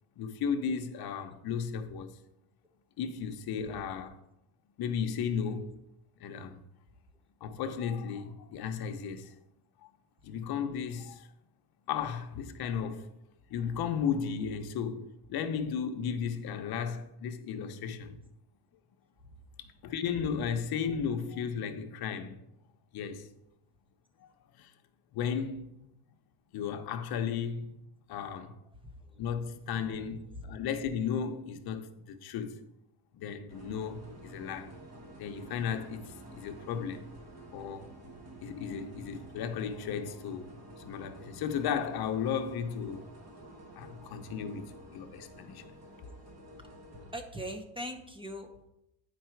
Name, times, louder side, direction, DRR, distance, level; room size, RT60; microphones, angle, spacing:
voice 1, 0.2-2.2 3.0-4.2 4.8-5.8 6.2-6.6 7.4-9.3 9.8-9.9 10.2-11.3 11.9-13.1 13.5-18.2 19.6-22.4 22.9-23.3 24.6-24.7 25.1-25.8 26.5-27.7 28.1-28.6 29.2-32.6 33.1-34.7 35.2-37.1 37.5-37.9 38.4-40.5 40.8-43.0 43.8-45.7, left 7 dB, 60° left, 0.8 m, -35 dB
sound 1, 33.5-47.1, right 1 dB, 40° right, 1.4 m, -50 dB
voice 2, 47.1-48.7, equal, 10° right, 0.7 m, -40 dB
9.2 x 4.7 x 4.5 m
cardioid pair, 145°, 42 cm